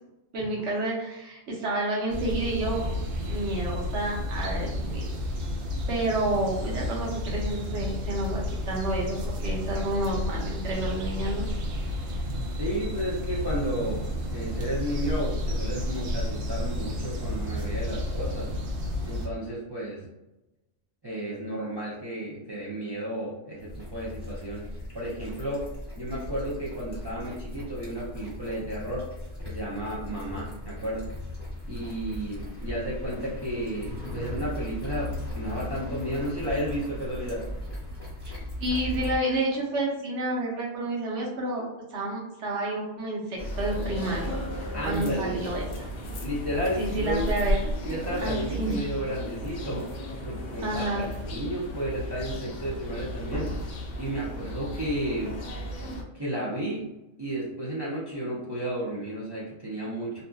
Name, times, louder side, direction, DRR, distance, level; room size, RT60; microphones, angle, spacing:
voice 1, 0.3-2.8 3.2-5.1 5.9-11.5 12.3-12.4 38.2-41.6 41.9-44.3 44.6-45.9 46.8-47.6 48.2-48.8 50.6-51.1, right 1 dB, 70° right, -2 dB, 1.0 m, -30 dB
sound 1, 2.1-19.3, left 1 dB, 90° right, 1.0 m, -31 dB
voice 2, 12.6-14.0 14.3-18.5 19.0-20.1 21.0-24.6 24.9-25.6 26.0-29.1 29.4-31.1 31.7-37.4 44.7-45.4 46.2-47.3 47.9-49.9 50.2-53.5 54.0-55.4 56.1-56.9 57.2-60.2, right 1 dB, 35° right, -7 dB, 0.4 m, -32 dB
sound 2, 23.6-39.2, left 1 dB, 10° left, 1.3 m, -37 dB
sound 3, 43.4-56.0, equal, 60° left, 0.4 m, -34 dB
2.7 x 2.5 x 2.3 m, 0.96 s
omnidirectional pair, 1.3 m